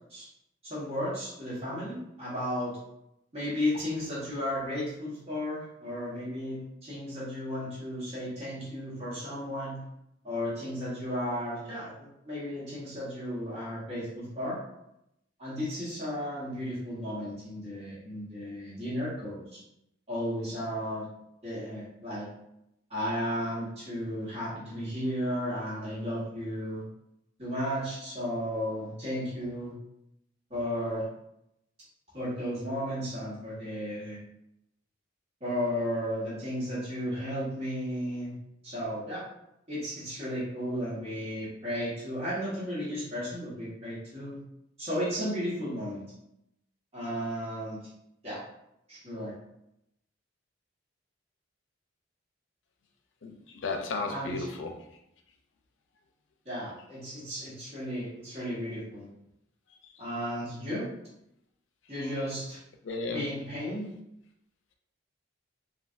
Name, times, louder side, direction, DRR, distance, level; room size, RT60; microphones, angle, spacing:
voice 1, 0.6-2.8 3.3-9.9 10.2-14.6 15.4-19.6 20.1-21.1 21.4-22.3 22.9-26.8 27.4-29.7 30.5-31.0 32.1-34.2 35.4-38.3 38.6-39.2 39.7-44.4 44.8-46.0 46.9-47.8 48.2-48.4 48.9-49.3 54.1-54.5 56.4-59.1 60.0-60.9 61.9-62.6 63.1-63.9, equal, 35° right, -9 dB, 1.2 m, -34 dB
voice 2, 53.6-54.7 59.8-59.9 62.8-63.2, left 3 dB, 80° left, 3 dB, 0.5 m, -33 dB
3.2 x 2.5 x 2.5 m, 0.82 s
head